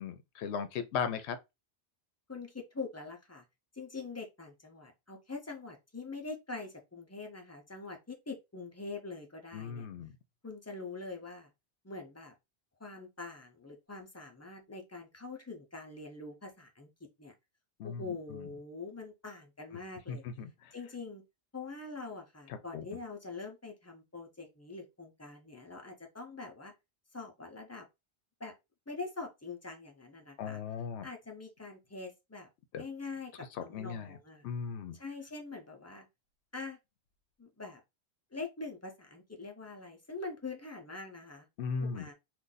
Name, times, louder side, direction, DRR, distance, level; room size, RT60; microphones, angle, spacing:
voice 1, 0.0-1.4 9.5-10.1 17.8-18.5 20.1-20.7 22.7-22.8 30.4-31.1 32.7-32.8 33.7-34.2 34.4-35.0 41.6-42.1, left 6 dB, 80° left, 0.8 m, -37 dB
voice 2, 2.3-3.4 3.7-9.9 10.4-11.5 11.8-12.3 12.8-16.9 17.2-17.3 17.8-20.2 20.7-21.2 21.5-26.7 27.1-27.9 28.4-28.5 28.9-30.6 31.0-32.5 32.8-34.4 34.9-36.1 36.5-36.8 37.4-37.8 38.3-41.5 41.8-42.1, left 3 dB, 20° left, 0.5 m, -44 dB
2.6 x 2.4 x 3.8 m
omnidirectional pair, 1.1 m